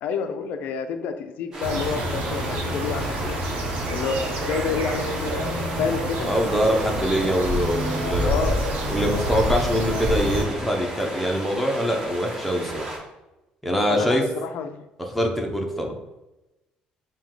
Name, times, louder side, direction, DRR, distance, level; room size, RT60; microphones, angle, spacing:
voice 1, 0.0-3.4 3.9-5.4 5.8-6.3 8.2-8.6 13.7-14.9, left 6 dB, 70° left, 8 dB, 0.3 m, -29 dB
sound 1, 1.5-13.0, right 1 dB, 20° right, 1.0 m, -35 dB
sound 2, 1.6-10.4, right 1 dB, 80° right, 0.8 m, -27 dB
voice 2, 6.2-8.3 8.9-12.9 13.6-14.2 15.1-16.0, equal, ahead, 0 dB, 0.6 m, -24 dB
4.5 x 2.2 x 3.7 m, 1.0 s
cardioid pair, 155°, 3 cm